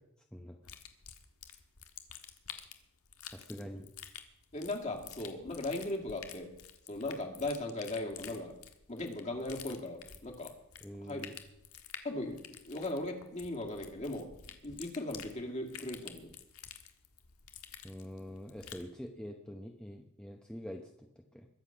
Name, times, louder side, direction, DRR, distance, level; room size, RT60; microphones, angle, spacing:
voice 1, 0.3-0.7 3.3-3.9 10.8-11.3 17.8-21.5, equal, 5° left, 3 dB, 0.8 m, -45 dB
sound 1, 0.6-18.9, left 9 dB, 90° left, 1.5 m, -50 dB
voice 2, 4.5-6.5 6.9-8.5 8.9-10.5 11.1-11.3 12.0-12.4 12.7-14.3 14.6-16.3, left 2 dB, 35° left, 2 dB, 2.3 m, -38 dB
21.5 x 8.2 x 5.8 m, 0.80 s
head